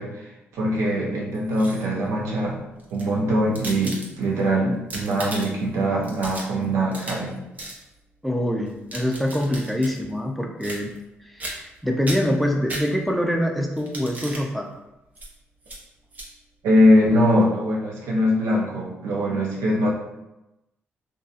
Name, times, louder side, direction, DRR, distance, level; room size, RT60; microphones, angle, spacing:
voice 1, 0.0-2.6 2.9-7.4 16.6-19.9, equal, 90° right, -3 dB, 0.6 m, -22 dB
sound 1, 1.3-2.0 2.8-4.4 4.7-5.7 6.0-7.3 7.6-7.8 8.7-10.0 10.6-11.1 11.4-11.8 12.0-13.3 13.8-14.5 15.1-15.3 15.6-15.8 16.1-16.3, right 1 dB, 35° right, 0.7 m, -36 dB
voice 2, 8.2-10.9 11.3-14.7, equal, ahead, 1 dB, 0.4 m, -25 dB
2.6 x 2.3 x 2.4 m, 0.95 s
cardioid pair, 70°, 5 cm